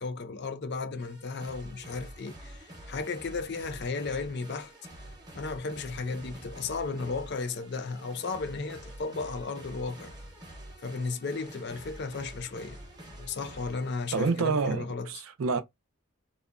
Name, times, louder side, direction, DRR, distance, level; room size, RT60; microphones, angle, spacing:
voice 1, 0.0-4.7 5.3-10.1 10.8-12.8 13.2-15.2, left 4 dB, 50° left, 0.5 m, -34 dB
sound 1, 1.0-14.7, right 1 dB, 20° right, 0.7 m, -47 dB
voice 2, 14.1-15.6, right 4 dB, 75° right, 0.5 m, -28 dB
2.7 x 2.1 x 2.4 m
head